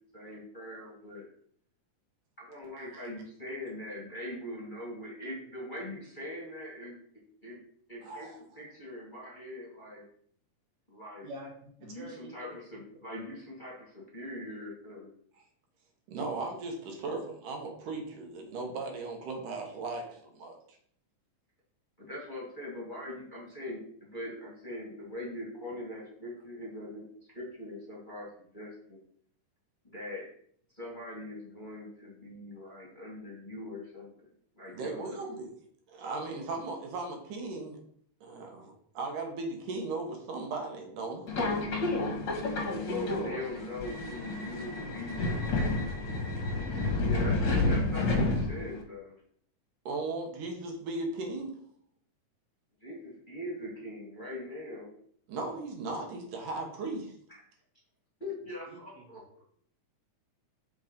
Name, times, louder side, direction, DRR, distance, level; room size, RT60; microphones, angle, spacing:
voice 1, 0.1-1.2 2.4-7.0 7.4-7.6 7.9-8.3 8.5-10.0 10.9-11.3 11.8-15.1 22.0-27.0 27.3-29.0 29.8-30.3 30.7-35.3 42.8-45.3 46.9-49.2 52.8-54.9 58.2-59.4, left 1 dB, 20° left, -4 dB, 1.5 m, -42 dB
voice 2, 8.0-8.4 16.1-20.6 34.7-35.5 35.9-37.8 38.2-41.3 49.9-51.5 55.3-57.1, right 3 dB, 80° right, 2 dB, 2.9 m, -37 dB
voice 3, 12.0-12.5, right 1 dB, 60° right, 1 dB, 2.4 m, -43 dB
Subway metro underground, 41.3-48.8, left 2 dB, 50° left, 1.6 m, -30 dB
6.1 x 5.2 x 5.2 m, 0.62 s
omnidirectional pair, 3.6 m